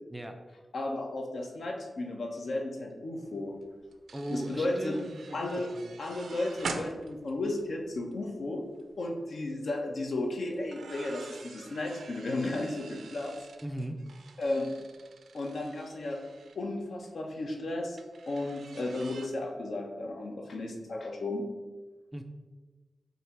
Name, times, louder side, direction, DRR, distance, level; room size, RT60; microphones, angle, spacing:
voice 1, 0.7-3.6 4.3-5.0 5.3-8.6 9.0-13.3 14.4-14.7 15.3-16.2 16.6-18.0 18.3-21.5, left 2 dB, 65° left, 2 dB, 0.9 m, -34 dB
sound 1, 3.3-3.4 3.6-8.2 8.7-8.9 10.5-16.6 18.0-19.3, right 4 dB, 85° right, 0.5 m, -46 dB
voice 2, 4.1-5.5 5.8-6.0 13.6-14.0 22.1-22.2, right 1 dB, 10° right, 5 dB, 0.4 m, -38 dB
7.8 x 2.8 x 4.5 m, 1.3 s
wide cardioid pair, 150°, 0 cm